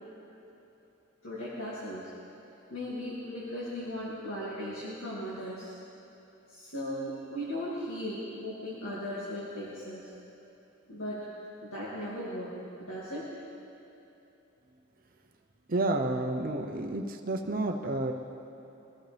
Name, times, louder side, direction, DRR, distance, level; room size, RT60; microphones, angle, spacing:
voice 1, 1.2-2.1 2.7-5.7 6.5-10.1 10.9-11.2 11.6-12.5 12.8-13.3, equal, 85° left, -8 dB, 2.5 m, -37 dB
voice 2, 15.7-18.1, right 2 dB, 45° right, 3 dB, 0.8 m, -30 dB
23.0 x 14.5 x 3.5 m, 2.9 s
head